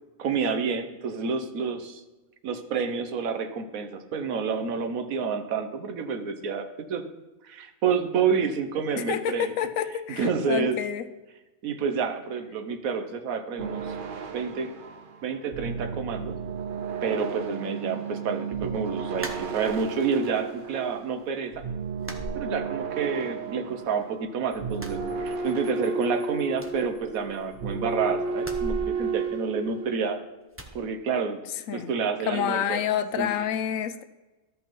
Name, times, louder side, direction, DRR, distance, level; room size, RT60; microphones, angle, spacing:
voice 1, 0.2-2.0 2.4-7.0 7.4-9.5 10.1-10.8 11.6-13.9 14.3-14.7 15.2-16.4 17.0-21.6 22.3-30.2 30.7-31.4 31.7-32.8 33.2-33.3, right 5 dB, 80° right, 8 dB, 1.3 m, -29 dB
voice 2, 9.0-11.1 31.5-31.9 32.2-34.0, left 9 dB, 75° left, 12 dB, 1.0 m, -28 dB
sound 1, 13.6-24.3 24.5-29.9, right 5 dB, 50° right, 0.7 m, -33 dB
sound 2, 19.2-20.1 20.5-21.2 21.4-21.6 22.0-23.1 23.4-24.3 24.7-25.8 26.1-26.2 26.5-27.7 28.4-30.0 30.5-30.8, right 1 dB, 15° right, 0.6 m, -40 dB
13.5 x 5.4 x 4.5 m, 1.1 s
omnidirectional pair, 1.4 m